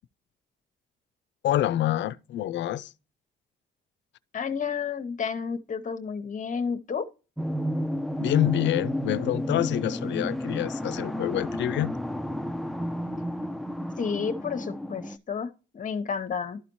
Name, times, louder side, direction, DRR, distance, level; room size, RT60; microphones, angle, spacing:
voice 1, 1.4-2.9 8.2-12.0, left 13 dB, 70° left, 0.5 m, -27 dB
voice 2, 4.3-7.1 14.0-16.6, left 6 dB, 40° left, 0.8 m, -31 dB
sound 1, 7.4-15.2, equal, ahead, 0.4 m, -31 dB
12.5 x 4.1 x 3.0 m
cardioid pair, 90°, 20 cm